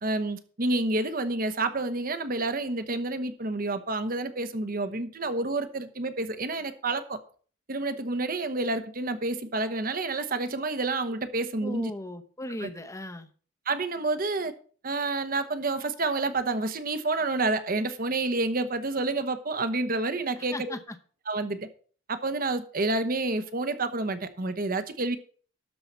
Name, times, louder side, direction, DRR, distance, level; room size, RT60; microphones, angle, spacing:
voice 1, 0.0-7.2 7.7-11.9 12.6-12.7 13.7-14.5 14.8-20.8 21.3-21.7 22.1-25.2, right 2 dB, 45° right, 1.0 m, -29 dB
voice 2, 11.6-13.3 20.4-21.0, left 1 dB, 15° left, 0.9 m, -37 dB
12.5 x 4.8 x 7.3 m
head